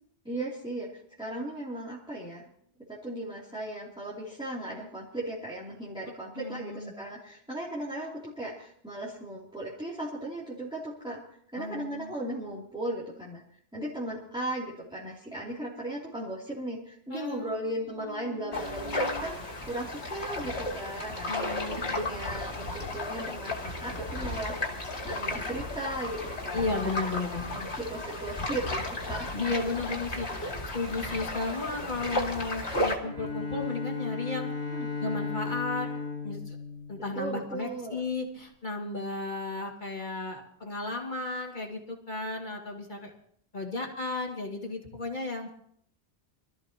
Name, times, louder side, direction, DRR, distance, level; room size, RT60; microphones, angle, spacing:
voice 1, 0.2-0.9 1.2-2.5 2.9-11.2 11.5-13.4 13.7-19.4 19.7-21.3 21.9-24.6 25.0-26.9 27.5-29.3 30.3-30.4 34.7-34.9 37.1-38.0, right 1 dB, 5° right, -8 dB, 3.0 m, -37 dB
voice 2, 6.4-6.9 11.6-12.1 17.1-19.2 21.3-22.1 26.5-27.8 29.3-34.5 35.0-35.9 36.2-36.6 36.9-43.1 43.5-45.7, left 3 dB, 45° left, 1 dB, 2.5 m, -34 dB
sound 1, 18.5-33.0, left 2 dB, 70° left, 2.6 m, -34 dB
Bowed string instrument, 33.0-37.6, left 4 dB, 75° right, 3.5 m, -36 dB
25.0 x 14.0 x 3.0 m, 0.65 s
omnidirectional pair, 1.1 m